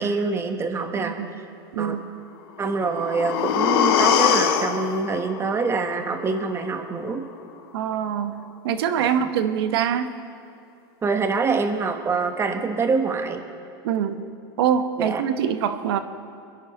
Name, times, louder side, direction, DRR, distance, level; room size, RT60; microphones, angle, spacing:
voice 1, 0.0-1.5 1.8-2.1 2.6-7.2 9.0-9.3 11.0-13.4 15.0-15.2, right 4 dB, 20° right, 6 dB, 1.2 m, -25 dB
voice 2, 1.0-1.3 1.7-2.1 7.7-10.1 13.8-14.2 14.6-16.0, right 8 dB, 75° right, 10 dB, 1.1 m, -24 dB
sound 1, 2.6-6.6 6.9-7.0, left 8 dB, 75° left, 1.3 m, -23 dB
26.0 x 11.0 x 4.1 m, 2.5 s
supercardioid pair, 120°, 13 cm